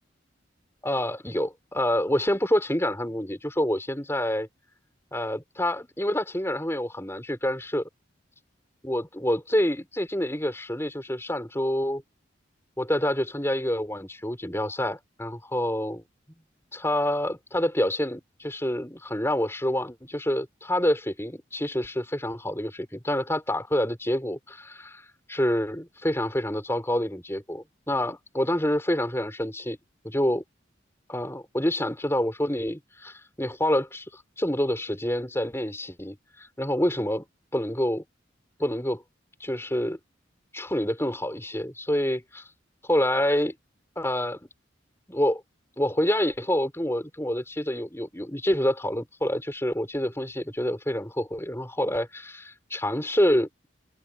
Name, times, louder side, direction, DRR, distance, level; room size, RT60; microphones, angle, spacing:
voice 1, 0.8-4.5 5.1-7.8 8.8-12.0 12.8-16.0 16.7-29.8 30.0-30.4 31.1-37.2 37.5-38.0 38.6-39.0 39.4-40.0 40.5-42.5 42.9-43.5 44.0-44.4 45.1-45.4 45.8-53.5, left 1 dB, 15° left, 5.8 m, -27 dB
head